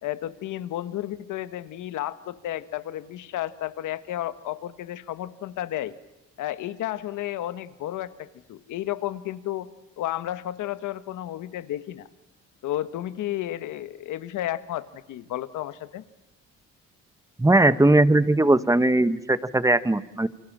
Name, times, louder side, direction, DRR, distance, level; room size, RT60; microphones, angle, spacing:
voice 1, 0.0-5.9 6.4-9.7 10.0-12.1 12.6-16.0, left 13 dB, 85° left, 14 dB, 1.4 m, -32 dB
voice 2, 17.4-20.3, right 2 dB, 10° right, 14 dB, 1.3 m, -19 dB
29.5 x 24.5 x 7.4 m, 0.95 s
cardioid pair, 90°, 30 cm